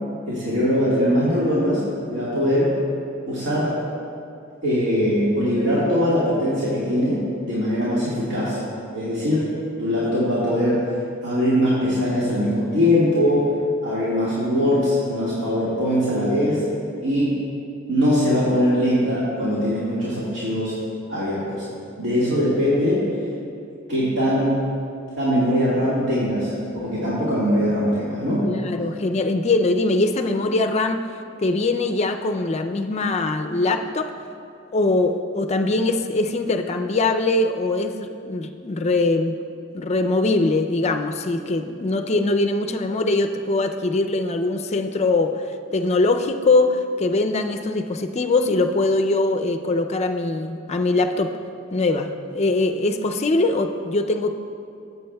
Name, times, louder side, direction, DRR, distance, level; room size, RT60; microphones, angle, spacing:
voice 1, 0.3-1.8 2.1-2.7 3.3-3.7 4.6-8.6 8.9-9.5 9.8-10.8 11.2-13.5 13.8-16.6 17.0-17.3 17.9-20.7 21.1-21.6 22.0-23.0 23.9-24.6 25.2-28.4, equal, 80° right, -10 dB, 1.9 m, -21 dB
voice 2, 28.4-31.1 31.4-34.1 34.7-39.3 39.7-45.4 45.7-51.3 51.7-54.3, left 2 dB, 35° left, 6 dB, 0.4 m, -22 dB
15.0 x 8.1 x 2.3 m, 2.6 s
head